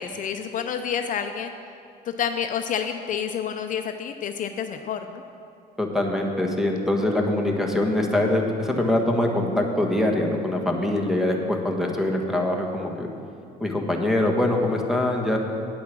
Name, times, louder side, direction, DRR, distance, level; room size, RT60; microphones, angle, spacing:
voice 1, 0.0-1.5 2.1-5.2, left 8 dB, 50° left, 7 dB, 0.5 m, -29 dB
voice 2, 5.8-13.1 13.6-15.4, left 1 dB, ahead, 1 dB, 1.3 m, -23 dB
9.4 x 8.4 x 6.1 m, 2.6 s
cardioid pair, 110°, 17 cm